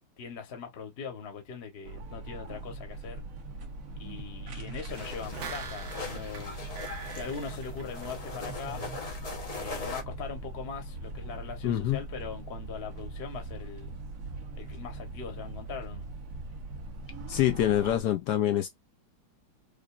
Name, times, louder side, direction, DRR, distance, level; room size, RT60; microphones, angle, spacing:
voice 1, 0.2-3.2 4.0-6.6 7.1-8.8 9.5-13.9 14.6-16.1, left 6 dB, 40° left, 1.1 m, -41 dB
sound 1, 1.8-18.0, right 2 dB, 55° right, 1.0 m, -41 dB
sound 2, 4.9-10.0, left 3 dB, 55° left, 0.4 m, -40 dB
sound 3, 5.1-8.6 8.9-9.0, right 7 dB, 75° right, 1.7 m, -44 dB
voice 2, 11.6-12.0 17.3-18.7, left 12 dB, 75° left, 0.9 m, -25 dB
5.0 x 2.4 x 2.4 m
omnidirectional pair, 2.2 m